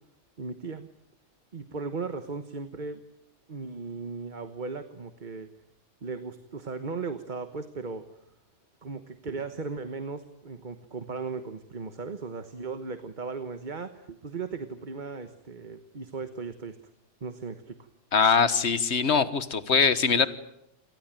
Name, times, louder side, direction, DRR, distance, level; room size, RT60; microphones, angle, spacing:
voice 1, 0.4-0.9 1.5-3.0 3.5-5.5 6.0-8.1 8.8-16.8 17.2-17.8 19.1-19.3, right 4 dB, 40° right, 10 dB, 1.3 m, -37 dB
voice 2, 18.1-20.3, left 5 dB, 65° left, 14 dB, 1.6 m, -22 dB
27.5 x 20.0 x 9.0 m, 0.83 s
omnidirectional pair, 1.2 m